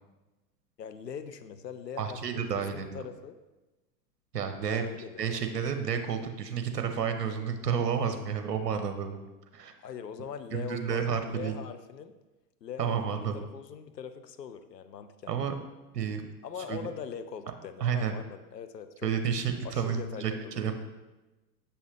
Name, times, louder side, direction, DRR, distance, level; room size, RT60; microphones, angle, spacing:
voice 1, 0.8-3.4 4.7-5.2 9.8-12.1 12.6-15.3 16.4-19.1 19.6-20.3 20.5-20.7, left 7 dB, 85° left, 10 dB, 0.7 m, -42 dB
voice 2, 2.0-3.1 4.3-4.8 5.2-9.2 9.5-9.7 10.5-11.5 12.8-13.4 15.3-15.5 15.9-16.2 16.7-16.8 17.8-18.2 19.0-20.7, right 7 dB, 75° right, 7 dB, 0.9 m, -31 dB
7.0 x 5.6 x 3.2 m, 1.1 s
figure-of-eight pair, 100°, 48 cm